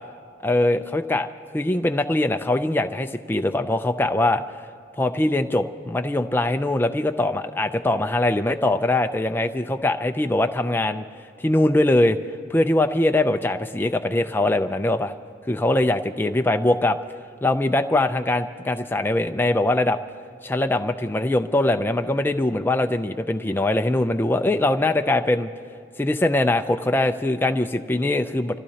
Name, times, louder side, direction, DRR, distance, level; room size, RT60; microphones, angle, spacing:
voice 1, 0.4-1.3 1.5-4.4 5.0-11.0 11.4-12.2 12.5-15.1 15.5-17.0 17.4-20.0 20.4-25.5 26.0-28.6, left 1 dB, 10° left, 6 dB, 0.3 m, -22 dB
26.5 x 15.0 x 2.8 m, 2.4 s
head